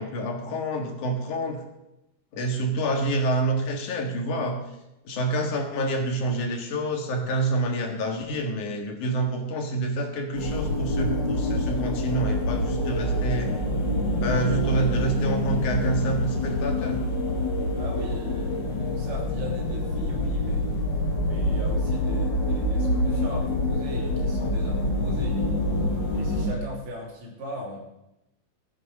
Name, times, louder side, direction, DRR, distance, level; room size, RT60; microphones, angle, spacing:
voice 1, 0.0-1.6 2.3-4.6 5.0-13.5 14.2-17.0, right 2 dB, 60° left, 2 dB, 3.1 m, -27 dB
sound 1, 10.3-26.5, left 1 dB, 40° left, 1.8 m, -26 dB
voice 2, 17.7-20.9 21.2-25.6 26.1-27.8, left 1 dB, 40° right, -3 dB, 3.8 m, -38 dB
15.5 x 7.9 x 6.5 m, 0.91 s
omnidirectional pair, 4.2 m